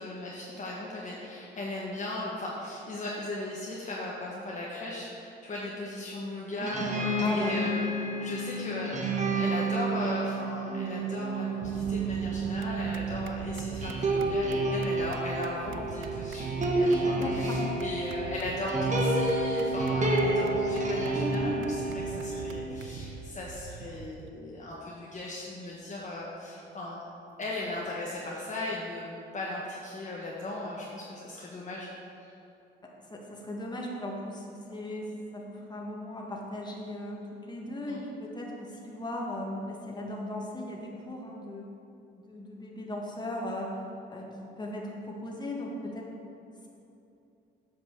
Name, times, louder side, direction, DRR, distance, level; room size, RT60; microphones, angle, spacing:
voice 1, 0.0-7.8 8.2-9.1 9.3-27.0 27.4-31.9 32.2-32.3 37.9-38.0, left 2 dB, 35° left, -4 dB, 1.2 m, -37 dB
sound 1, 6.6-22.6, right 2 dB, 40° right, 1.4 m, -30 dB
voice 2, 7.2-7.7 17.1-17.7 33.0-41.6 42.2-43.8 44.1-44.3 44.6-46.0, left 1 dB, 20° left, -1 dB, 1.7 m, -37 dB
sound 2, 11.6-24.3, right 7 dB, 80° right, 0.5 m, -43 dB
7.9 x 5.2 x 6.6 m, 2.8 s
cardioid pair, 90°, 20 cm